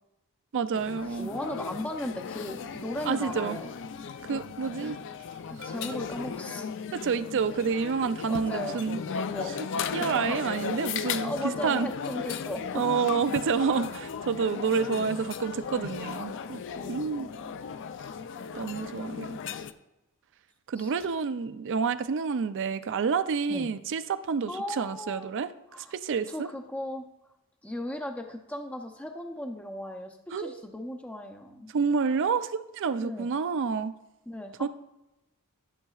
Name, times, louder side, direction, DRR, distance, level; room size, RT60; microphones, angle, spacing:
voice 1, 0.5-1.3 3.1-3.6 4.3-5.0 5.6-5.7 6.9-9.0 9.6-11.3 11.6-11.9 12.7-16.6 16.9-17.3 18.5-19.4 20.7-25.5 25.8-26.5 30.3-30.6 31.7-33.9 34.6-34.7, right 5 dB, 60° right, 12 dB, 0.4 m, -29 dB
sound 1, 0.7-19.7, left 6 dB, 55° left, 0.4 m, -36 dB
voice 2, 1.1-3.7 4.8-5.0 5.5-6.7 8.3-10.5 11.2-12.8 14.7-14.8 16.8-17.6 18.9-19.6 20.7-20.9 23.5-23.7 24.5-25.3 25.7-25.9 26.3-27.1 27.6-31.7 33.0-33.3 34.3-34.7, left 1 dB, 5° left, 3 dB, 0.5 m, -37 dB
11.5 x 6.6 x 2.4 m, 0.95 s
head